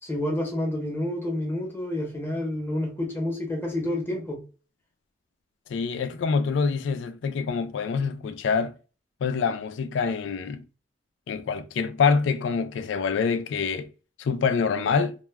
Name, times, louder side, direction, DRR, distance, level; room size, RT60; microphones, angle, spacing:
voice 1, 0.0-4.4, left 1 dB, 10° left, 0.8 m, -29 dB
voice 2, 5.7-8.8 9.2-10.6 11.3-13.9 14.2-15.2, left 5 dB, 85° left, 0.3 m, -26 dB
2.2 x 2.1 x 3.2 m
head